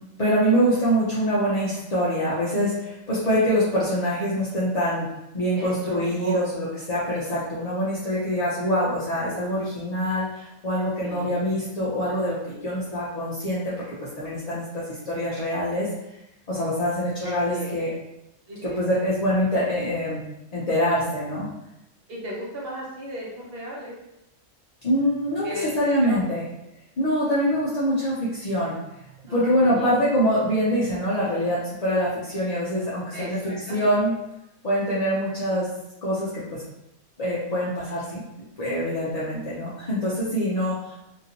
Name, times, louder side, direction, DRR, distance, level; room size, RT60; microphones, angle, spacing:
voice 1, 0.2-5.1 5.3-13.7 14.2-15.9 16.5-17.9 18.6-20.2 20.5-21.5 24.8-26.4 27.0-28.8 29.3-34.1 34.6-35.7 36.0-36.6 37.2-38.2 38.6-40.9, equal, 50° left, -9 dB, 0.4 m, -24 dB
voice 2, 5.6-6.5 11.0-11.4 17.2-17.8 18.5-18.8 22.1-23.9 25.4-25.7 26.0-26.3 29.3-29.9 33.1-34.0, equal, 50° right, -4 dB, 0.8 m, -35 dB
2.9 x 2.5 x 2.8 m, 0.88 s
omnidirectional pair, 1.5 m